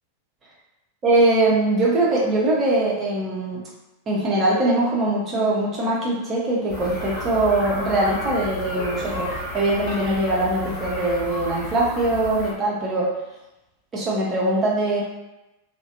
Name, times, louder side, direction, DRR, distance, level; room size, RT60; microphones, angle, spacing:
voice 1, 1.0-3.6 4.1-13.1 13.9-15.0, right 2 dB, 25° right, -5 dB, 0.8 m, -22 dB
sound 1, 6.7-12.5, left 1 dB, 35° left, 1.5 m, -32 dB
2.5 x 2.1 x 2.7 m, 0.97 s
figure-of-eight pair, 90°, 0 cm